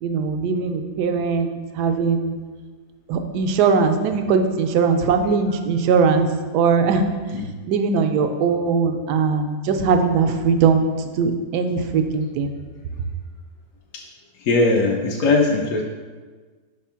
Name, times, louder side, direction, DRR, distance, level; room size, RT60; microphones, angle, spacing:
voice 1, 0.0-2.4 3.1-6.3 6.5-7.0 7.7-10.9 11.2-12.5, right 5 dB, 85° right, 6 dB, 1.1 m, -20 dB
voice 2, 14.4-15.8, left 3 dB, 65° left, -1 dB, 0.9 m, -19 dB
5.0 x 3.6 x 5.6 m, 1.4 s
omnidirectional pair, 1.7 m